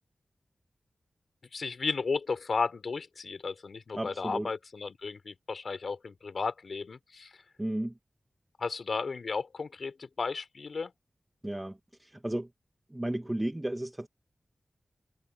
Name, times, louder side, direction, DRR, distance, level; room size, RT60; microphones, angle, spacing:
voice 1, 1.5-7.3 8.6-10.9, left 4 dB, 70° left, 3.9 m, -34 dB
voice 2, 3.9-4.5 7.6-7.9 11.4-12.5 12.9-14.1, right 1 dB, 15° right, 1.3 m, -34 dB
wide cardioid pair, 80°, 0 cm